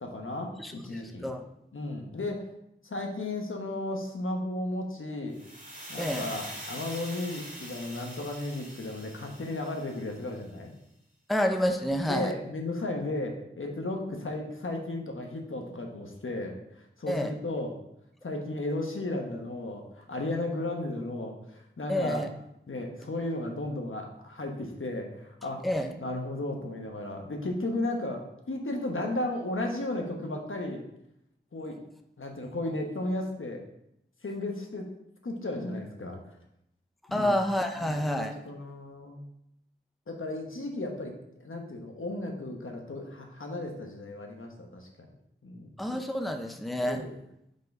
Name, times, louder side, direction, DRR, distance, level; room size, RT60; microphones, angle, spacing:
voice 1, 0.0-1.3 1.7-2.5 2.8-5.4 5.9-10.7 12.1-17.7 18.2-22.2 22.7-25.6 26.0-30.8 31.5-31.8 32.2-33.6 34.2-34.9 35.2-36.2 37.1-37.3 37.8-39.2 40.1-41.1 41.4-44.9 45.4-45.7 46.9-47.1, left 2 dB, 80° left, 2 dB, 1.1 m, -34 dB
voice 2, 0.6-1.5 6.0-6.3 11.3-12.3 17.1-17.3 21.9-22.3 25.6-25.9 37.1-38.3 45.8-47.1, equal, ahead, 5 dB, 0.6 m, -29 dB
sound 1, 5.3-10.4, equal, 40° right, 2.0 m, -43 dB
5.3 x 4.0 x 5.3 m, 0.79 s
wide cardioid pair, 50°, 21 cm